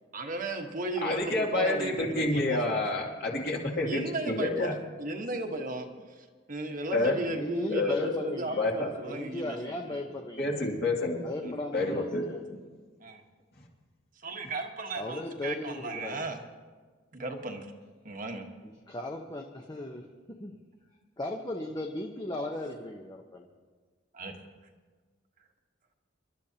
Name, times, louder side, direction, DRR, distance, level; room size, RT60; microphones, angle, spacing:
voice 1, 0.1-2.8 3.8-4.7 5.0-9.6 9.9-10.0 13.0-13.2 14.2-16.4 17.1-17.7 18.0-18.4 24.1-24.4, right 2 dB, 45° right, 3 dB, 1.3 m, -35 dB
voice 2, 1.0-4.8 6.9-7.2 7.7-8.2 8.5-8.9 10.4-12.2, left 2 dB, 55° left, -1 dB, 2.6 m, -29 dB
voice 3, 7.3-10.6 11.2-12.4 14.9-16.2 18.6-20.5 21.2-23.5, left 1 dB, 20° left, 1 dB, 0.9 m, -37 dB
27.5 x 12.0 x 2.9 m, 1.5 s
head